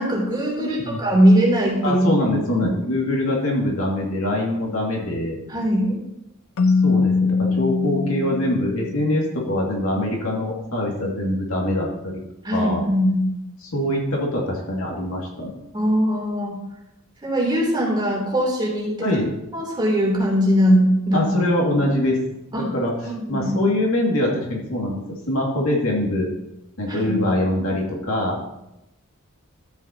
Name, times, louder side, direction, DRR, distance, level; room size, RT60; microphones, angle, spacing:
voice 1, 0.0-2.1 2.6-2.7 5.5-6.0 12.4-13.2 15.7-16.5 17.2-19.1 19.5-21.2 22.5-22.7 23.1-23.5 26.9-27.3, equal, 20° right, -4 dB, 3.3 m, -20 dB
voice 2, 0.6-1.0 1.8-5.4 6.8-12.2 12.5-12.8 13.7-15.5 19.0-19.3 21.1-22.2 22.7-25.0 25.3-26.3 26.8-28.4, left 1 dB, 75° left, -2 dB, 2.3 m, -23 dB
Keyboard (musical), 6.6-9.3, left 4 dB, 90° left, 0.6 m, -22 dB
12.5 x 7.8 x 2.9 m, 0.89 s
head